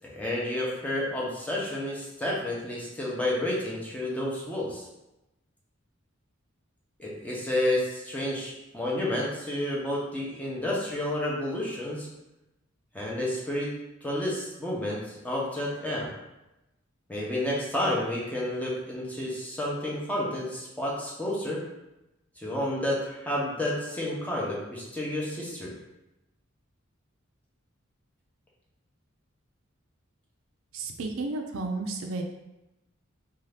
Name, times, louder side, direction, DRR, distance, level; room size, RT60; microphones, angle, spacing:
voice 1, 0.0-4.9 7.0-12.1 12.9-13.7 14.0-16.1 17.1-21.6 22.4-25.7, left 1 dB, 5° left, -5 dB, 0.6 m, -30 dB
voice 2, 30.7-32.2, right 3 dB, 70° right, 4 dB, 0.4 m, -32 dB
2.7 x 2.3 x 3.3 m, 0.95 s
head